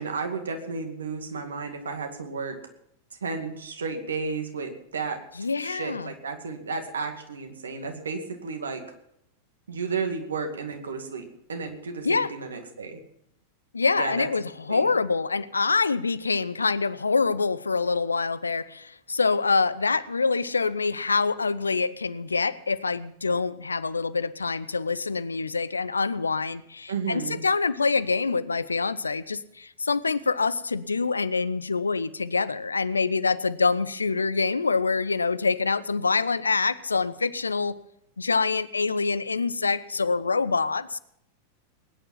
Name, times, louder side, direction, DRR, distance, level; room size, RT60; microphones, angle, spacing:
voice 1, 0.0-2.6 3.2-5.2 5.6-8.8 9.7-13.0 14.0-14.8 26.9-27.4, right 4 dB, 70° right, 5 dB, 2.3 m, -33 dB
voice 2, 5.4-6.1 12.0-12.3 13.7-37.8 38.2-41.0, left 4 dB, 75° left, 17 dB, 0.6 m, -25 dB
20.5 x 10.0 x 5.7 m, 0.74 s
figure-of-eight pair, 90°, 0 cm